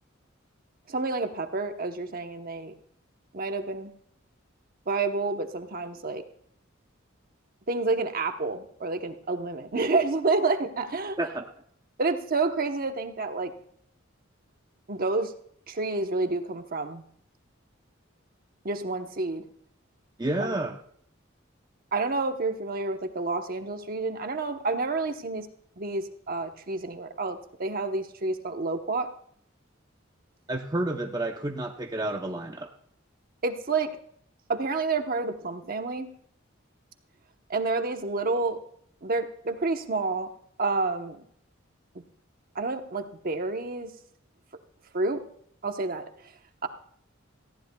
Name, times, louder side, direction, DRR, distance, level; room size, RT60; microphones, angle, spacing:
voice 1, 0.9-2.7 3.3-3.9 4.9-6.2 7.7-11.2 12.0-13.5 14.9-15.3 15.7-17.0 18.6-19.4 20.4-20.5 21.9-25.5 25.8-29.1 33.4-33.9 34.5-36.1 37.5-38.6 39.0-40.3 40.6-41.2 42.5-43.9 44.9-45.2 45.6-46.1 46.6-46.7, right 3 dB, 45° right, 6 dB, 1.0 m, -29 dB
voice 2, 20.2-20.8 30.5-32.7, right 1 dB, 20° right, 3 dB, 0.7 m, -30 dB
18.5 x 14.5 x 2.3 m, 0.65 s
head